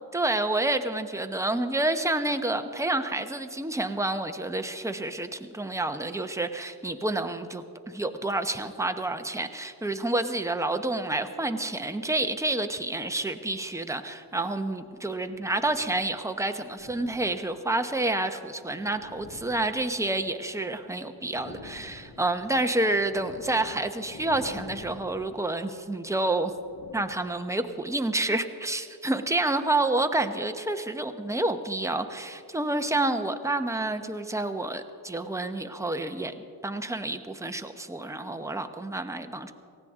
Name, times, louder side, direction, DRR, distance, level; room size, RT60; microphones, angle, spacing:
voice 1, 0.1-26.5 26.9-36.3 36.6-39.5, right 2 dB, 5° right, 7 dB, 0.9 m, -29 dB
sound 1, 13.4-13.5 14.5-16.0 16.6-17.7 18.4-20.8 21.1-27.7, left 3 dB, 70° left, 1.9 m, -49 dB
18.5 x 15.0 x 3.7 m, 2.5 s
cardioid pair, 60°, 42 cm